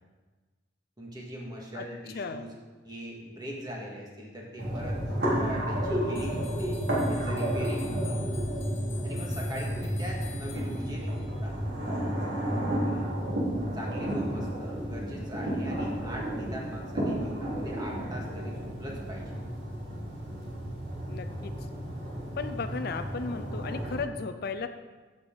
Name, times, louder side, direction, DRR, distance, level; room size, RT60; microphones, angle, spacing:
voice 1, 1.0-2.5 2.8-5.0 5.3-6.8 7.1-8.3 9.0-11.5 12.8-13.1 13.7-19.3, equal, 20° right, -2 dB, 2.0 m, -41 dB
voice 2, 2.1-2.5 21.1-21.5 22.4-24.7, left 4 dB, 55° left, 8 dB, 0.5 m, -35 dB
sound 1, 4.6-24.0, equal, 60° right, 3.8 m, -32 dB
sound 2, 6.1-11.4, left 8 dB, 35° left, 1.7 m, -49 dB
14.5 x 6.7 x 4.0 m, 1.3 s
head